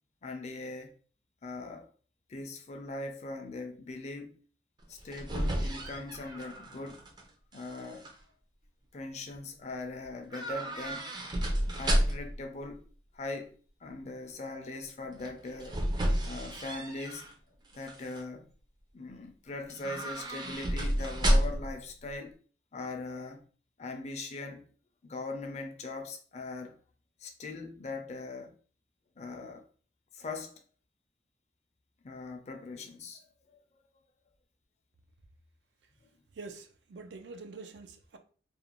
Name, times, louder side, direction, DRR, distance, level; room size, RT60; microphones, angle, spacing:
voice 1, 0.2-0.9 1.4-1.9 2.3-4.4 4.9-7.0 7.5-8.1 8.9-11.1 11.8-12.9 13.1-15.8 16.2-17.3 17.7-18.5 18.9-22.3 22.7-23.4 23.8-24.7 25.0-26.7 27.2-28.5 29.2-29.6 30.1-30.5 32.0-33.6, left 3 dB, 40° left, 0.4 m, -41 dB
sound 1, 4.8-7.2 7.5-8.1 10.3-12.4 15.2-17.3 17.7-18.2 19.7-21.8 22.0-22.1, equal, 25° right, 0.4 m, -31 dB
voice 2, 36.3-38.2, right 3 dB, 85° right, 0.4 m, -46 dB
2.5 x 2.1 x 2.9 m
head